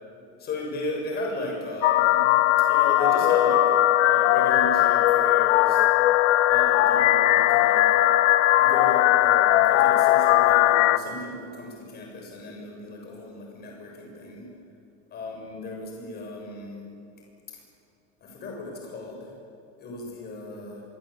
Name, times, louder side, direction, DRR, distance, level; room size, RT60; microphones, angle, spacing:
voice 1, 0.4-2.3 2.7-3.6 4.0-5.8 6.5-8.1 8.6-14.5 15.1-16.9 17.5-17.6 18.2-19.3 19.8-20.8, left 2 dB, 30° left, 0 dB, 7.0 m, -35 dB
sound 1, 1.8-11.0, left 14 dB, 90° left, 1.2 m, -19 dB
26.0 x 23.5 x 8.6 m, 2.5 s
cardioid pair, 170°, 34 cm